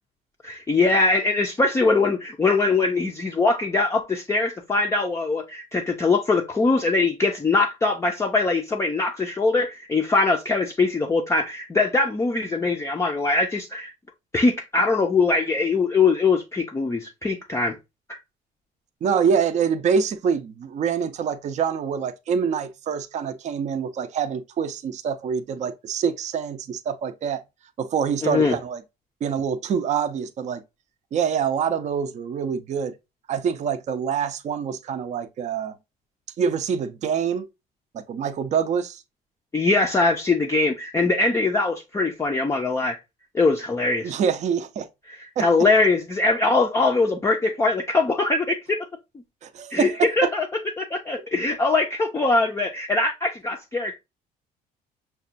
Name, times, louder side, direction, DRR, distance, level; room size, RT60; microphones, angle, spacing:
voice 1, 0.4-13.9 14.3-17.8 18.1-18.2 28.2-28.6 39.5-43.0 43.3-44.2 45.1-48.9 49.7-50.5 50.8-54.0, left 3 dB, 15° left, 0.4 m, -22 dB
voice 2, 19.0-27.4 27.8-28.8 29.2-30.6 31.1-32.9 33.3-35.8 36.4-37.5 37.9-39.0 44.0-44.9 45.4-45.5 49.4-50.1, right 7 dB, 45° right, 0.5 m, -25 dB
5.8 x 2.2 x 2.5 m
cardioid pair, 110°, 17 cm